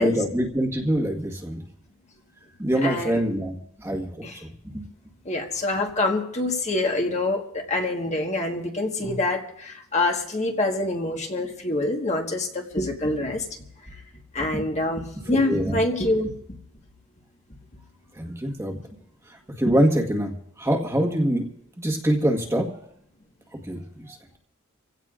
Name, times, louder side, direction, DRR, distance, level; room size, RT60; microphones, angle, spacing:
voice 1, 0.0-1.6 2.6-4.5 4.7-4.8 14.5-14.7 15.3-15.8 18.2-18.8 19.6-20.3 20.6-21.5 21.8-22.7 23.7-23.8 24.1-24.2, right 1 dB, 10° right, 1 dB, 1.5 m, -24 dB
voice 2, 2.8-3.2 4.2-4.4 5.2-13.4 13.9-14.0 14.3-16.3, left 2 dB, 30° left, 2 dB, 1.4 m, -26 dB
27.0 x 16.5 x 2.5 m, 0.69 s
head